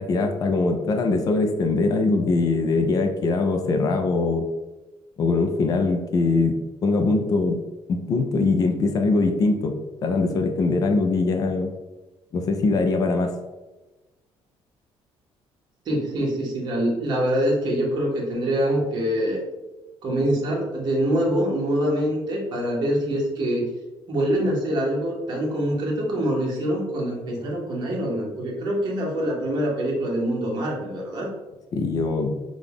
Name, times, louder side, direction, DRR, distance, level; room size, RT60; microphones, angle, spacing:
voice 1, 0.0-4.4 5.2-7.6 7.9-9.7 10.0-11.7 12.3-13.3 31.7-32.3, left 3 dB, 35° left, 4 dB, 0.5 m, -22 dB
voice 2, 15.8-19.4 20.0-23.7 24.1-31.3, equal, 45° right, -3 dB, 1.3 m, -24 dB
5.7 x 2.4 x 3.5 m, 1.1 s
cardioid pair, 165°, 11 cm